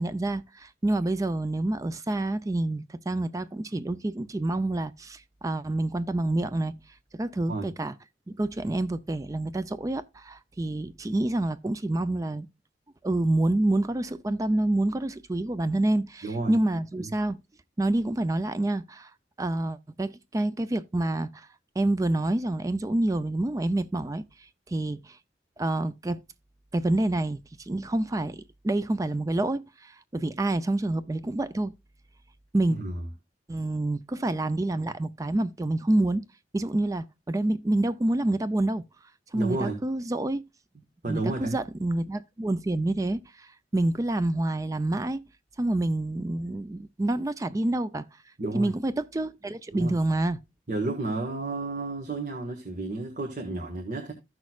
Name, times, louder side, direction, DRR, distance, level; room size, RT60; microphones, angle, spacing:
voice 1, 0.0-6.7 7.1-7.9 8.3-12.5 13.0-17.4 17.8-19.1 19.4-21.5 21.8-25.2 25.6-26.2 26.7-31.7 32.5-32.8 33.5-36.2 36.5-38.8 39.3-40.4 41.1-45.2 45.6-48.0 48.5-50.4, right 1 dB, 20° right, 0.4 m, -27 dB
voice 2, 16.2-16.5 17.0-17.1 32.7-33.1 39.3-39.8 41.0-41.6 48.4-48.7 49.7-49.9 50.7-54.1, right 2 dB, 45° right, 1.5 m, -31 dB
15.0 x 6.2 x 2.4 m
head